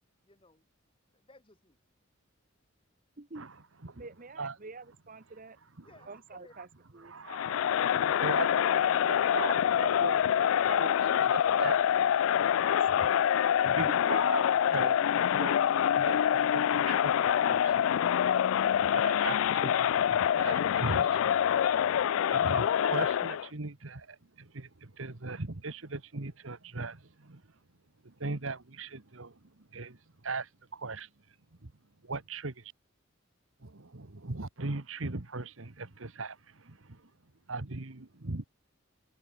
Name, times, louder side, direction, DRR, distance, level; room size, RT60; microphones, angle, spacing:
voice 1, 0.2-0.7 1.1-1.8 5.8-6.5 13.4-13.8, left 2 dB, 25° left, 6.1 m, -59 dB
voice 2, 3.2-3.5 3.9-5.6 6.1-6.7 6.9-7.1 12.8-12.9 13.9-14.0, right 3 dB, 40° right, 1.1 m, -46 dB
voice 3, 7.0-11.8 12.6-13.3 13.6-15.1 15.3-15.6 15.9-17.7 18.7-21.3 22.3-27.4 28.0-31.1 31.6-31.7 32.0-32.7 33.6-37.1 37.5-38.4, right 3 dB, 70° right, 1.4 m, -39 dB
Crowd, 7.3-23.5, left 9 dB, 70° left, 0.3 m, -26 dB
open air
head